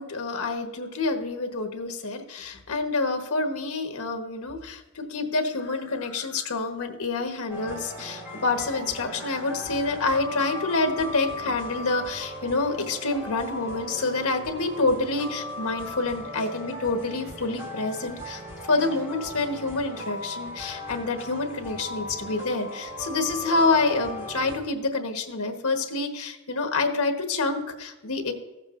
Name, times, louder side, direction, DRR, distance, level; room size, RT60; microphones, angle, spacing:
voice 1, 0.0-18.4 18.7-28.3, left 3 dB, 85° left, 5 dB, 1.1 m, -27 dB
sound 1, 7.5-24.6, left 1 dB, 10° right, 2.5 m, -38 dB
15.0 x 7.4 x 2.5 m, 1.0 s
head